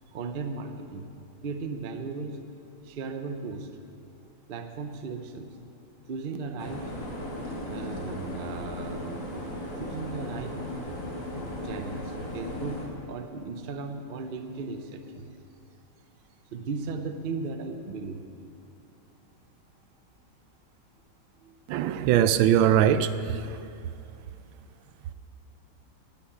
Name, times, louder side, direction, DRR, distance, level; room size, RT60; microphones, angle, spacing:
voice 1, 0.1-1.1 1.4-2.4 2.8-3.7 4.5-5.6 6.1-6.9 7.6-10.6 11.3-15.3 16.5-18.2 21.4-21.5, right 4 dB, 65° right, 7 dB, 0.5 m, -36 dB
sound 1, 6.6-12.9, left 1 dB, 45° left, 2.3 m, -36 dB
voice 2, 21.7-23.6, right 10 dB, 90° right, 12 dB, 1.4 m, -22 dB
10.0 x 8.4 x 10.0 m, 2.7 s
omnidirectional pair, 2.1 m